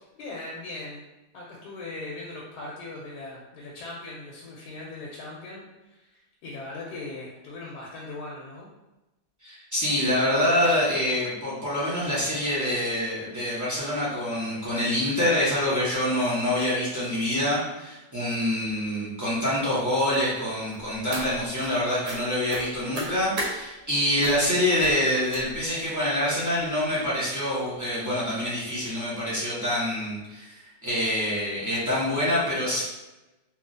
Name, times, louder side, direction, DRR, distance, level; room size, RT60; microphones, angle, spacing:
voice 1, 0.2-1.0 1.3-8.7, left 2 dB, 80° left, -4 dB, 1.2 m, -39 dB
voice 2, 9.4-30.5 30.8-32.8, left 1 dB, 25° right, -10 dB, 0.4 m, -26 dB
sound 1, 20.7-21.7 22.0-22.2 22.5-23.5 24.2-24.5 24.8-25.0 25.3-25.7 26.4-26.5 26.9-27.1 27.4-27.5, right 1 dB, 80° right, 1.4 m, -34 dB
3.0 x 2.3 x 2.6 m, 1.0 s
omnidirectional pair, 1.8 m